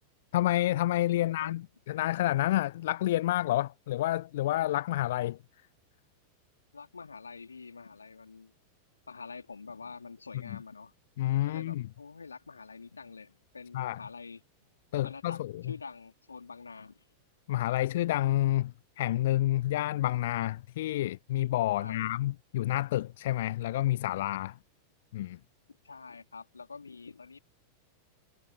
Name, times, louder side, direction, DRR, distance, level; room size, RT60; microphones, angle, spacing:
voice 1, 0.3-5.4 10.5-10.6 11.2-11.8 13.7-14.0 14.9-15.6 17.5-24.5 25.1-25.4, left 14 dB, 55° left, 0.5 m, -29 dB
voice 2, 1.1-1.6 6.7-8.5 9.1-10.9 11.5-14.4 15.0-17.1 21.7-22.1 25.7-27.4, left 4 dB, 75° left, 3.8 m, -46 dB
figure-of-eight pair, 90°, 0 cm